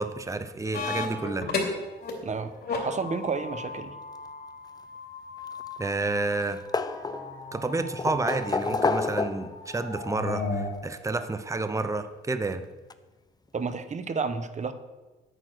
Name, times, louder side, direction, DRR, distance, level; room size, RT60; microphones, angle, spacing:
voice 1, 0.0-1.5 5.8-6.6 7.5-12.6, right 3 dB, 15° right, 10 dB, 0.8 m, -30 dB
sound 1, 0.7-2.1 2.4-10.7, left 3 dB, 55° left, 3.1 m, -35 dB
voice 2, 2.8-3.9 13.5-14.7, right 4 dB, 35° right, 10 dB, 1.1 m, -31 dB
sound 2, 5.4-6.1 6.4-7.5 8.0-9.7 10.9-11.0 12.5-12.6 12.9-13.0, left 3 dB, 20° left, 0.6 m, -29 dB
9.1 x 8.8 x 6.3 m, 1.2 s
cardioid pair, 90°, 20 cm